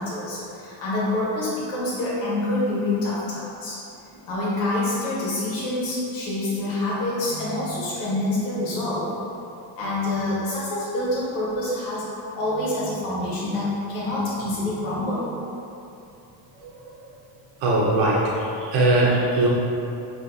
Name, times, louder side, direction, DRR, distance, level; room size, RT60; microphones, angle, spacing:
voice 1, 0.0-3.8 4.3-9.1 9.8-12.0 12.3-15.4, left 2 dB, 85° left, -7 dB, 1.5 m, -26 dB
voice 2, 17.6-18.2 18.6-19.5, right 2 dB, 90° right, -5 dB, 0.8 m, -19 dB
4.8 x 2.9 x 2.7 m, 2.8 s
cardioid pair, 90°, 49 cm